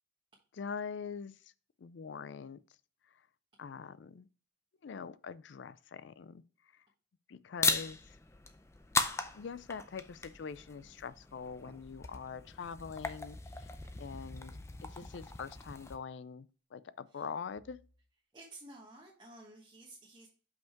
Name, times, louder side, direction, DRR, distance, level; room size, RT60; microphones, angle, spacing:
voice 1, 0.5-1.5 1.8-2.6 3.6-4.3 4.8-6.4 6.7-6.8 7.3-8.2 9.3-17.8, left 6 dB, 75° left, 0.4 m, -44 dB
sound 1, 7.6-16.0, left 3 dB, 15° left, 0.5 m, -38 dB
sound 2, 11.8-12.1 12.8-13.0 13.7-14.0 15.6-15.9 17.5-18.1, equal, 90° right, 1.4 m, -61 dB
voice 2, 18.3-20.3, right 2 dB, 25° right, 1.4 m, -53 dB
5.8 x 5.2 x 4.5 m
head